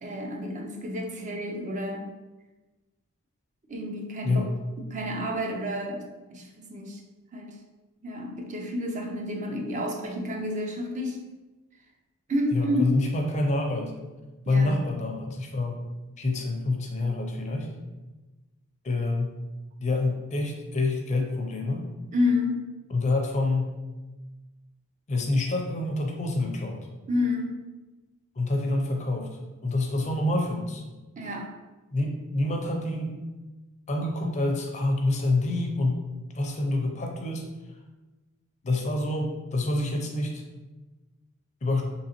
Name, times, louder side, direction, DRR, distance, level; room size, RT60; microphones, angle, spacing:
voice 1, 0.0-2.1 3.7-4.4 4.9-7.0 7.3-7.6 8.0-11.2 12.3-13.0 14.5-14.8 22.1-22.7 27.1-27.6 31.2-31.6, left 1 dB, 35° right, 2 dB, 0.5 m, -30 dB
voice 2, 12.5-14.0 14.5-15.8 16.2-17.7 18.8-19.4 19.8-21.9 22.9-23.7 25.1-26.9 28.4-30.8 31.9-33.2 33.9-36.0 36.3-37.4 38.6-40.4 41.6-41.8, left 2 dB, 30° left, 2 dB, 0.4 m, -27 dB
3.8 x 2.8 x 2.9 m, 1.2 s
head